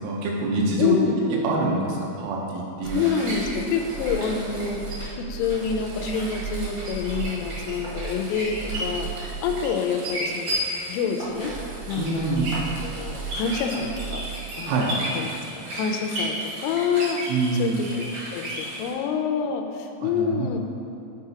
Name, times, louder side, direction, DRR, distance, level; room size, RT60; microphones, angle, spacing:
voice 1, 0.0-3.1 12.0-12.5 14.7-15.0 17.3-17.8 20.0-20.6, right 2 dB, 85° right, -3 dB, 3.4 m, -26 dB
voice 2, 0.8-1.1 2.9-10.6 10.9-11.5 11.9-12.5 12.8-14.2 14.6-18.1 18.3-20.6, left 6 dB, 85° left, 4 dB, 3.2 m, -27 dB
sound 1, 2.8-18.9, right 2 dB, 65° right, 1.8 m, -33 dB
11.0 x 4.8 x 2.9 m, 2.6 s
omnidirectional pair, 5.8 m